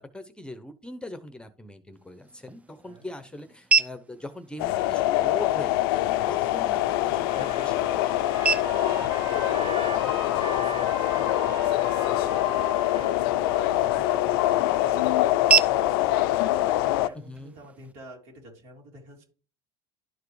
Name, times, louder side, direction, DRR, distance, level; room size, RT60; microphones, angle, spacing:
voice 1, 0.0-8.2 17.1-17.5, left 1 dB, 10° left, 11 dB, 0.8 m, -40 dB
sound 1, 1.9-17.9, right 5 dB, 10° right, 0.4 m, -33 dB
sound 2, 4.6-17.1, left 15 dB, 80° left, 0.4 m, -24 dB
Trumpet, 6.6-15.0, right 3 dB, 40° right, 1.7 m, -40 dB
voice 2, 8.6-16.3 16.6-19.2, right 1 dB, 75° right, 0 dB, 3.2 m, -48 dB
11.5 x 4.8 x 3.2 m, 0.38 s
supercardioid pair, 95°, 12 cm